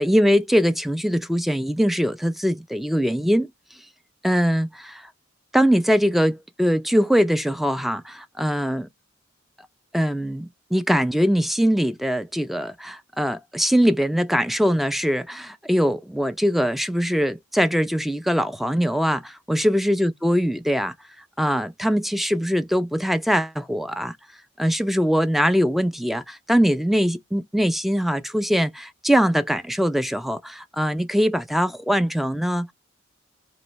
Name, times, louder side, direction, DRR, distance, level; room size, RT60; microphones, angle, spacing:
voice 1, 0.0-3.5 4.2-5.1 5.5-8.8 9.9-20.9 21.4-24.1 24.6-32.7, equal, ahead, 0.4 m, -22 dB
3.1 x 3.0 x 4.5 m
head